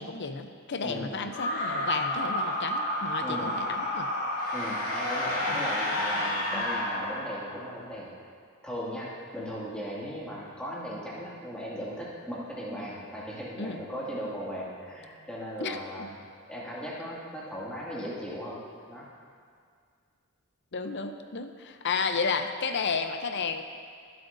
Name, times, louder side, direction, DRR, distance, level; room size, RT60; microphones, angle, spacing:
voice 1, 0.0-4.1 5.5-6.6 13.6-13.8 15.6-16.1 20.7-23.6, left 5 dB, 50° left, 7 dB, 0.7 m, -33 dB
voice 2, 0.8-1.2 3.2-3.6 4.5-8.1 8.6-16.1 16.5-18.6 18.9-19.1, equal, 5° left, -7 dB, 2.1 m, -37 dB
sound 1, 1.3-7.7, left 1 dB, 80° left, 2.6 m, -30 dB
23.0 x 7.8 x 2.7 m, 2.2 s
head